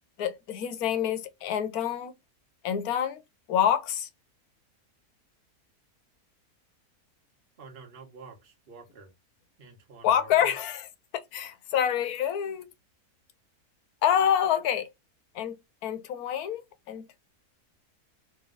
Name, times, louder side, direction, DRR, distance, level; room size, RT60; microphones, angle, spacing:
voice 1, 0.2-2.1 2.6-3.2 3.5-4.1 10.0-10.9 11.3-12.7 14.0-14.9 15.3-17.2, left 9 dB, 75° left, 1.2 m, -27 dB
voice 2, 7.6-9.1 9.6-10.5, right 4 dB, 40° right, 1.3 m, -49 dB
3.2 x 3.1 x 3.8 m
omnidirectional pair, 1.6 m